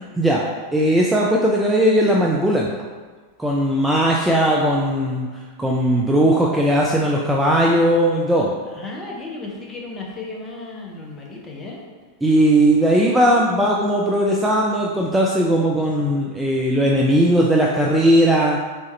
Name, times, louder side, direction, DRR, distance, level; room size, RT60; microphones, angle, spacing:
voice 1, 0.7-2.7 3.4-5.3 5.6-8.5 12.2-18.6, right 1 dB, 5° right, -2 dB, 0.4 m, -18 dB
voice 2, 8.7-11.8, left 3 dB, 20° left, -2 dB, 0.8 m, -34 dB
4.1 x 3.5 x 3.1 m, 1.4 s
figure-of-eight pair, 90°, 0 cm